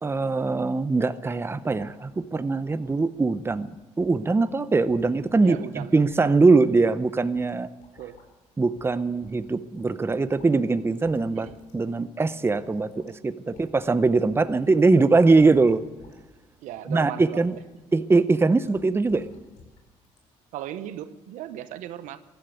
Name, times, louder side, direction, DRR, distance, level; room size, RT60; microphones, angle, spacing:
voice 1, 0.0-7.7 8.6-11.5 11.7-15.8 16.9-17.5 17.9-19.3, right 3 dB, 20° right, 13 dB, 0.7 m, -22 dB
sound 1, 1.7-1.9 2.2-2.3 2.7-3.0 3.5-3.7 4.0-4.2 4.5-4.6 4.9-5.7 6.1-6.8 7.3-7.5 7.8-8.3 8.8-8.9 9.2-10.6 10.8-11.2 11.4-11.7 12.1-12.2 12.6-13.1 13.5-14.2 14.5-14.8 15.1-16.2 16.5-16.8 17.4-17.6 18.6-19.8 20.0-20.2, left 4 dB, 75° left, 4.5 m, -52 dB
voice 2, 5.4-5.9 8.0-8.2 11.3-11.6 13.5-13.6 16.6-17.6 20.5-22.2, right 12 dB, 80° right, 12 dB, 0.9 m, -37 dB
15.5 x 11.5 x 7.9 m, 1.1 s
cardioid pair, 85°, 13 cm